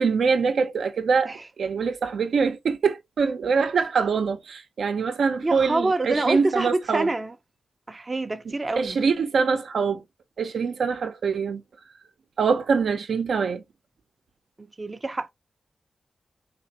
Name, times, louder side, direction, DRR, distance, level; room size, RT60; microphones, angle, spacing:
voice 1, 0.0-7.1 8.8-10.0 10.4-11.6 12.4-13.6, right 5 dB, 80° right, 0.6 m, -24 dB
voice 2, 5.4-7.3 7.9-9.0 14.6-15.3, right 2 dB, 30° right, 0.6 m, -26 dB
4.0 x 2.5 x 2.8 m
cardioid pair, 70°, 0 cm